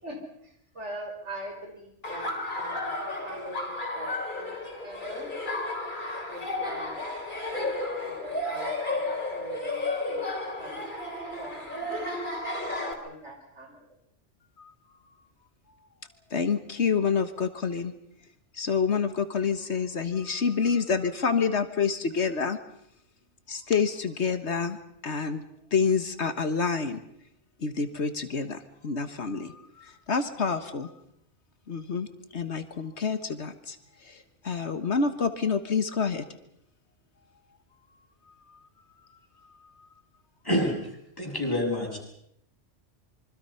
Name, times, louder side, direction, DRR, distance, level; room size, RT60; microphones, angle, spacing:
voice 1, 0.0-2.9 3.2-4.5 4.8-5.3 6.3-7.0 7.3-10.2 10.6-10.8 11.4-12.1 13.0-13.9, right 1 dB, 75° right, 2 dB, 5.6 m, -43 dB
Laughter, 2.0-12.9, left 2 dB, 40° left, 4.0 m, -33 dB
voice 2, 16.3-17.9 18.5-22.6 23.5-24.8 25.0-25.4 25.7-27.0 27.6-30.9 31.7-33.8 34.0-36.2 38.5-38.6, left 5 dB, 70° left, 10 dB, 1.7 m, -28 dB
voice 3, 40.4-40.9 41.2-42.0, left 1 dB, 20° left, -2 dB, 7.7 m, -27 dB
26.5 x 24.5 x 5.8 m, 0.75 s
omnidirectional pair, 1.2 m